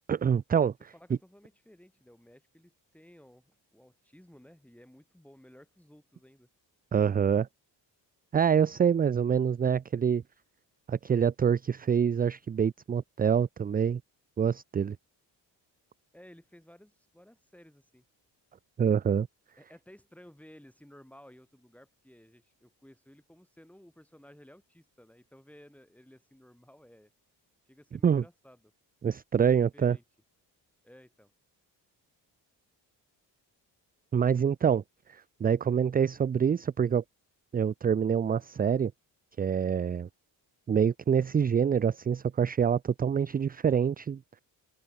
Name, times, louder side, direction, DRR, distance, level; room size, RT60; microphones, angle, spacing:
voice 1, 0.1-0.7 6.9-7.5 8.3-10.2 10.9-14.0 14.4-15.0 18.8-19.3 28.0-28.2 29.0-30.0 34.1-34.8 35.1-37.0 37.5-38.9 39.4-40.1 40.7-44.4, right 7 dB, 25° right, 0.3 m, -26 dB
voice 2, 0.9-6.5 16.1-18.0 19.6-27.1 27.7-28.7 29.4-30.0 30.8-31.3, equal, 5° left, 3.9 m, -56 dB
open air
cardioid pair, 75°, 43 cm